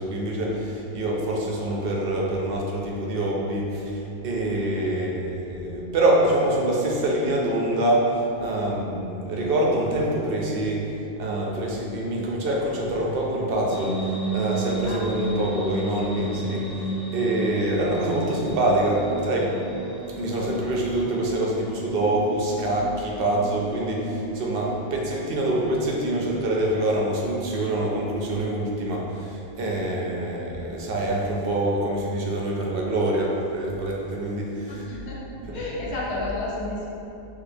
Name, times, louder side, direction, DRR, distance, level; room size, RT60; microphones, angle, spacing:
voice 1, 0.0-10.9 11.2-19.5 20.1-34.8 35.4-35.7, right 1 dB, 65° right, -2 dB, 0.7 m, -25 dB
sound 1, 13.7-27.7, right 1 dB, 55° left, 0.5 m, -34 dB
voice 2, 34.7-35.2 35.5-36.9, left 2 dB, 90° left, -4 dB, 1.0 m, -31 dB
4.2 x 2.9 x 2.7 m, 2.9 s
omnidirectional pair, 1.1 m